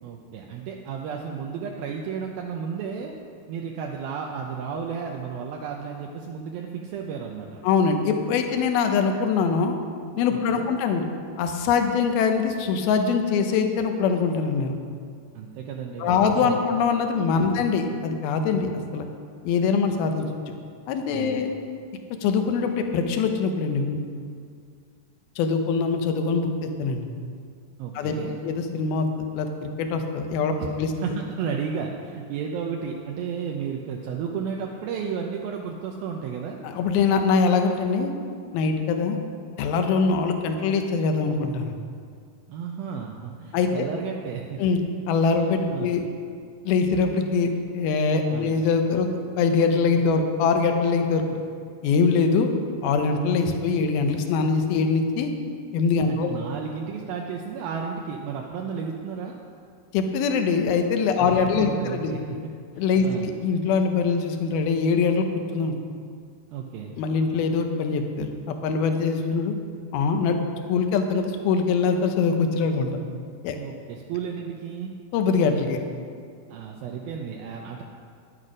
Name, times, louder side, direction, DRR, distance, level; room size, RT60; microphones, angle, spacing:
voice 1, 0.0-3.1 3.5-7.6 10.5-10.7 15.3-16.6 17.4-17.5 21.1-21.4 27.8-28.4 30.6-30.7 31.0-36.6 42.5-44.6 45.7-45.9 48.3-48.5 56.1-59.4 61.2-62.4 62.8-63.3 66.5-67.0 73.5-74.9 76.5-77.8, right 6 dB, 75° right, 1 dB, 2.4 m, -33 dB
voice 2, 7.6-9.8 10.2-11.0 11.4-14.7 16.0-19.1 19.4-20.3 20.9-21.5 22.2-24.0 25.4-27.0 28.0-28.1 28.4-30.5 30.8-30.9 36.6-38.1 38.5-39.2 39.6-41.7 43.5-43.9 44.6-44.8 45.1-46.0 46.7-49.1 49.4-51.4 51.8-52.5 52.8-55.3 55.7-56.3 59.9-62.1 62.8-65.3 65.5-65.7 67.0-69.5 69.9-70.3 70.7-72.9 73.4-73.6 75.1-75.8, left 5 dB, 75° left, 5 dB, 2.7 m, -23 dB
11.0 x 10.5 x 5.1 m, 2.2 s
omnidirectional pair, 4.6 m